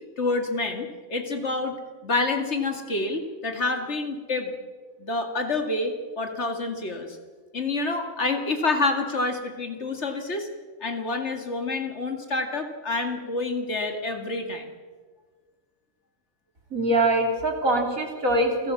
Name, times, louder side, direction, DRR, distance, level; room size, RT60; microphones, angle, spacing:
voice 1, 0.2-1.8 2.0-4.5 5.0-7.2 7.5-10.5 10.8-14.7, left 3 dB, 55° left, 5 dB, 2.5 m, -28 dB
voice 2, 16.7-18.7, right 1 dB, 90° right, 3 dB, 3.9 m, -23 dB
28.5 x 17.5 x 7.2 m, 1.5 s
omnidirectional pair, 1.4 m